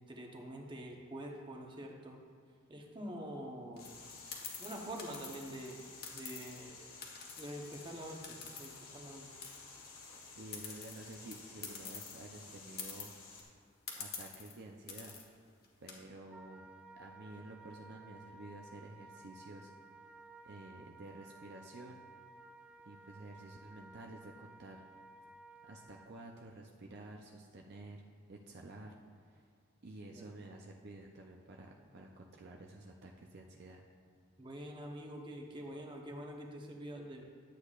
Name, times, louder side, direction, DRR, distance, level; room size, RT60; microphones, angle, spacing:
voice 1, 0.0-2.2 2.7-3.9 4.6-5.8 6.1-6.8 7.4-9.3 30.1-30.3 34.4-37.2, right 1 dB, 25° right, 0 dB, 0.9 m, -46 dB
sound 1, 3.8-13.4, left 4 dB, 80° left, 1.8 m, -53 dB
sound 2, 3.8-6.6 7.0-9.1 9.4-12.2 12.5-12.6 12.8-13.4 13.9-14.5 14.9-15.3 15.6-15.9, left 6 dB, 50° left, 1.3 m, -47 dB
voice 2, 10.4-13.1 13.9-15.4 15.8-16.7 16.9-19.7 20.4-22.1 22.8-24.9 25.7-28.0 28.3-29.5 29.8-33.8, right 2 dB, 50° right, 0 dB, 0.6 m, -51 dB
Wind instrument woodwind instrument, 16.3-26.2, right 2 dB, 5° right, 0.5 m, -56 dB
11.5 x 8.2 x 2.4 m, 2.2 s
head